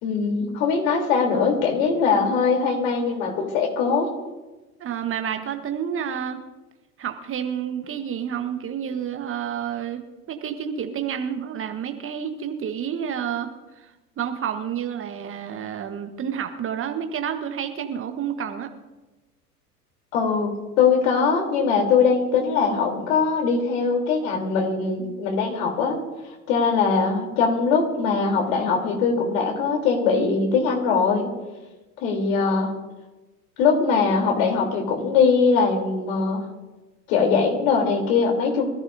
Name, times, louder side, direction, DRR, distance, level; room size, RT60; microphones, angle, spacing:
voice 1, 0.0-4.1 20.1-26.0 26.5-31.3 32.0-32.7 33.6-36.4 37.1-38.7, left 5 dB, 55° left, 2 dB, 3.6 m, -21 dB
voice 2, 4.8-6.4 7.0-18.7, right 8 dB, 25° right, 7 dB, 1.3 m, -30 dB
25.0 x 14.5 x 2.7 m, 1.1 s
figure-of-eight pair, 80°, 47 cm